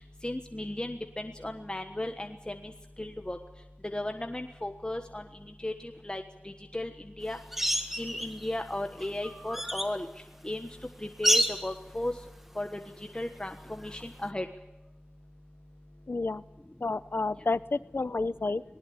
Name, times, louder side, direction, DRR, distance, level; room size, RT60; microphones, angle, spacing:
voice 1, 0.2-2.7 3.0-3.4 3.8-5.2 5.6-6.2 6.7-6.9 7.2-7.4 8.0-10.1 10.4-10.7 11.0-12.1 12.5-12.7 13.1-14.4, left 1 dB, 25° left, 5 dB, 1.4 m, -35 dB
sound 1, 7.5-8.5 9.0-10.0 11.2-11.7 14.0-14.1, equal, 5° right, 1.7 m, -28 dB
voice 2, 16.1-16.4 16.8-18.6, left 3 dB, 65° left, 15 dB, 0.8 m, -30 dB
19.5 x 19.5 x 8.8 m, 0.97 s
wide cardioid pair, 55°, 4 cm